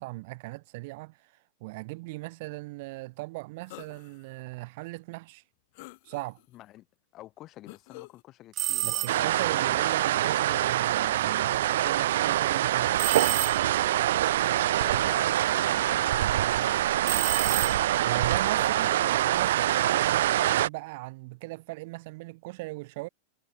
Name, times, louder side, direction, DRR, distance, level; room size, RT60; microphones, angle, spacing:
voice 1, 0.0-5.4 6.0-6.4 8.8-13.1 17.7-23.1, right 23 dB, 55° right, 4.0 m, -38 dB
sound 1, 3.7-4.3 4.8-4.9 5.7-6.6 7.7-8.2, left 25 dB, 55° left, 3.7 m, -48 dB
voice 2, 6.5-6.9 7.1-9.9 14.8-17.4 18.0-19.1, left 15 dB, 35° left, 5.0 m, -49 dB
sound 2, 8.5-9.5 13.0-14.0 17.0-18.2, right 14 dB, 30° right, 0.4 m, -31 dB
sound 3, 9.1-20.7, right 13 dB, 75° right, 0.6 m, -25 dB
supercardioid pair, 150°, 0 cm